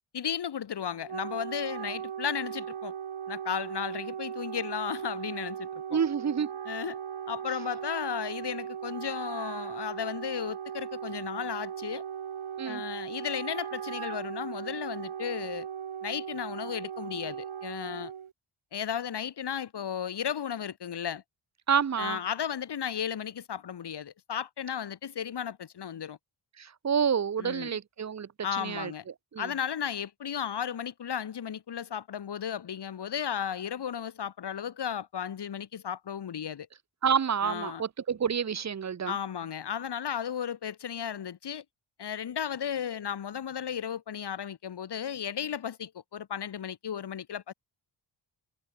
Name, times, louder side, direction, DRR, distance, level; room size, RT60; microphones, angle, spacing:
voice 1, 0.1-2.9 3.3-6.0 6.6-7.0 7.3-12.0 12.6-15.7 16.0-18.1 18.7-21.2 22.0-26.2 27.4-27.7 28.4-29.0 29.4-36.7 37.4-37.8 39.1-41.6 42.0-47.5, left 8 dB, 55° left, 1.3 m, -34 dB
Wind instrument woodwind instrument, 0.8-18.3, right 8 dB, 80° right, 4.2 m, -38 dB
voice 2, 5.9-6.5 12.6-12.8 21.7-22.2 26.8-28.3 28.6-28.9 29.3-29.5 37.0-39.1, right 7 dB, 35° right, 0.7 m, -28 dB
wide cardioid pair, 145°, 47 cm